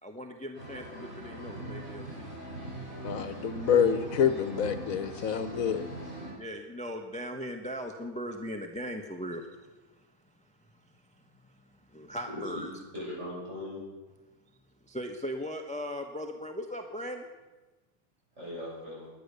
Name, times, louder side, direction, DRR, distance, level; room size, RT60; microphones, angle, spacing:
voice 1, 0.0-2.4 6.4-12.7 14.8-17.3, equal, 5° left, 4 dB, 0.9 m, -39 dB
sound 1, 0.5-6.3, right 1 dB, 70° right, 7.9 m, -41 dB
voice 2, 3.0-5.8, left 7 dB, 70° left, 11 dB, 1.3 m, -27 dB
voice 3, 12.2-12.6 12.9-13.8 18.4-19.1, left 1 dB, 50° right, -5 dB, 7.7 m, -39 dB
17.0 x 11.0 x 6.7 m, 1.2 s
omnidirectional pair, 1.5 m